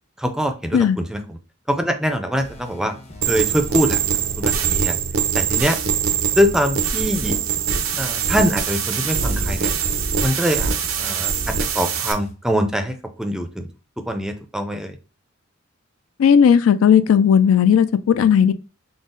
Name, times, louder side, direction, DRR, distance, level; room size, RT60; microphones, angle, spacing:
voice 1, 0.2-1.4 1.7-2.9 3.3-4.0 4.4-5.0 5.3-5.8 6.3-7.4 8.0-9.7 10.2-10.7 11.0-13.7 14.1-14.9, equal, 5° right, 0.4 m, -23 dB
sound 1, 2.4-12.3, equal, 35° left, 0.8 m, -41 dB
sound 2, 3.2-12.1, right 7 dB, 80° right, 0.6 m, -23 dB
voice 2, 16.2-18.5, left 8 dB, 80° left, 0.3 m, -15 dB
3.9 x 2.0 x 3.7 m
head